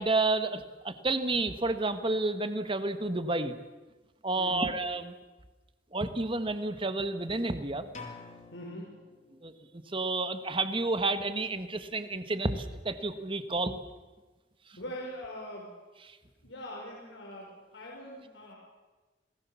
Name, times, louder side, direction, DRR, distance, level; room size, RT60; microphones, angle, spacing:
voice 1, 0.0-3.5 4.2-5.1 5.9-7.9 9.4-13.8 16.0-16.2, right 2 dB, 30° right, 10 dB, 1.6 m, -30 dB
voice 2, 4.4-4.7 8.5-8.9 14.8-15.8 16.4-18.6, equal, 90° left, -3 dB, 5.6 m, -42 dB
sound 1, 7.9-9.8, left 4 dB, 40° left, 3.6 m, -48 dB
28.0 x 19.5 x 7.2 m, 1.2 s
head